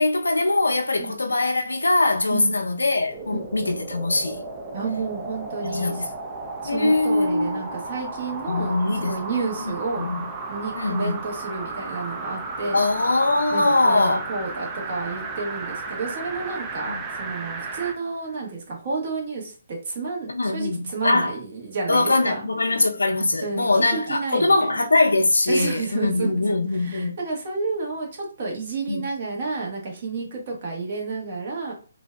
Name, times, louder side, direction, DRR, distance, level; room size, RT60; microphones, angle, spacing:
voice 1, 0.0-4.4 5.6-6.1 6.6-7.8 8.5-9.3 9.6-10.3 10.7-11.1 12.7-14.2 16.9-17.0 20.3-21.3 21.9-27.2 28.9-29.0, left 2 dB, 90° left, 0.6 m, -22 dB
sound 1, 3.0-18.0 18.4-18.5, right 3 dB, 20° right, 0.5 m, -34 dB
voice 2, 4.7-6.0 6.6-10.1 10.5-12.8 13.5-22.5 23.4-24.8 25.5-31.7, right 4 dB, 45° right, 1.3 m, -31 dB
3.8 x 2.5 x 2.2 m
hypercardioid pair, 150°, 0 cm